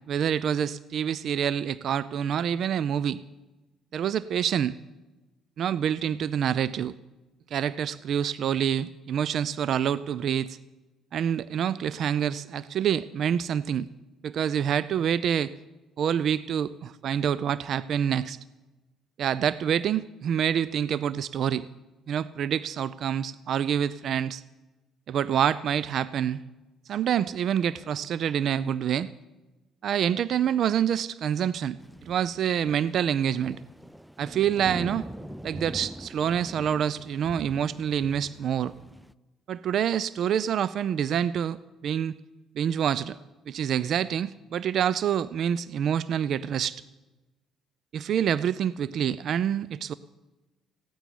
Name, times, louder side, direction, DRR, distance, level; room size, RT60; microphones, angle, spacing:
voice 1, 0.1-3.2 3.9-4.7 5.6-6.9 7.5-10.6 11.1-13.9 14.2-15.5 16.0-18.4 19.2-21.7 22.1-24.4 25.1-26.4 26.9-29.1 29.8-33.6 34.2-35.0 35.4-38.7 39.5-42.2 42.6-43.2 43.5-46.8 47.9-49.9, right 9 dB, 60° right, 18 dB, 0.4 m, -27 dB
sound 1, 31.8-39.1, equal, 5° right, 0.4 m, -43 dB
15.5 x 9.1 x 9.7 m, 1.1 s
supercardioid pair, 70°, 0 cm